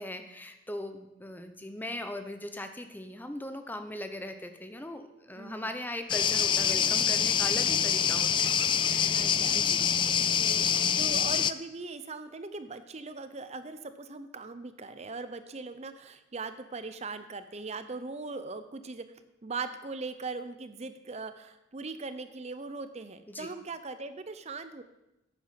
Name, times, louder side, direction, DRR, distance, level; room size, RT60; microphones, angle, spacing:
voice 1, 0.0-9.2 9.5-9.8 10.4-10.7 23.3-23.5, left 1 dB, 10° left, 7 dB, 0.8 m, -39 dB
voice 2, 5.4-5.7 9.1-9.6 10.6-19.0 19.4-24.8, right 3 dB, 35° right, 11 dB, 0.7 m, -40 dB
sound 1, 6.1-11.5, left 8 dB, 25° left, 0.3 m, -26 dB
10.5 x 8.8 x 5.8 m, 0.92 s
head